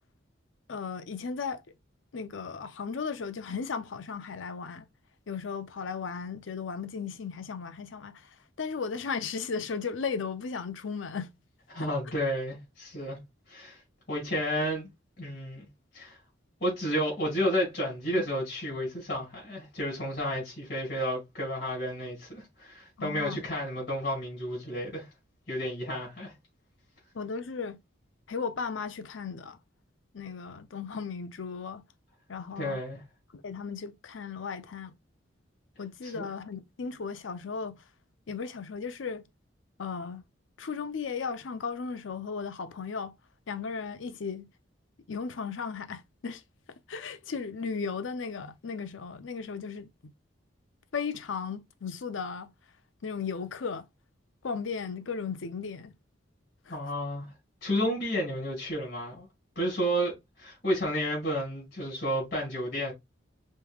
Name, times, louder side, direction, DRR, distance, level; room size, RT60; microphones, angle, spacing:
voice 1, 0.7-1.6 2.1-4.9 5.3-11.3 11.8-11.9 23.0-23.4 27.1-27.8 28.3-29.6 30.1-31.8 32.3-32.8 33.4-34.9 35.8-37.8 38.3-39.3 39.8-40.2 40.6-43.1 43.5-44.5 45.1-46.4 46.9-50.1 50.9-52.5 53.0-53.9 54.4-55.9 56.7-56.8 57.8-57.9, left 5 dB, 85° left, 0.6 m, -36 dB
voice 2, 11.7-13.2 13.5-13.8 14.1-14.9 15.2-15.6 15.9-16.2 16.6-25.1 25.5-26.3 32.6-33.0 36.0-36.2 56.7-57.3 57.6-59.3 59.5-62.9, equal, 50° left, 2.8 m, -31 dB
5.2 x 3.1 x 2.3 m
head